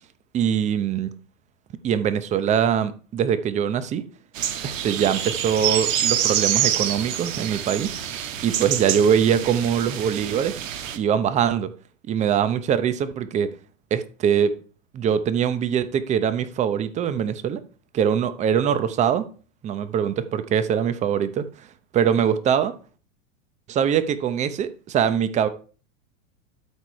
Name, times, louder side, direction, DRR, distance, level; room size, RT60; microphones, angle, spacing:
voice 1, 0.3-1.1 1.8-4.0 4.6-8.0 8.4-10.5 10.9-11.7 12.1-13.5 13.9-14.5 14.9-17.6 17.9-19.2 19.6-21.7 21.9-22.7 23.7-25.5, right 8 dB, 20° right, 0.7 m, -22 dB
sound 1, 4.4-11.0, right 10 dB, 75° right, 1.6 m, -26 dB
12.5 x 4.8 x 4.6 m
supercardioid pair, 145°, 39 cm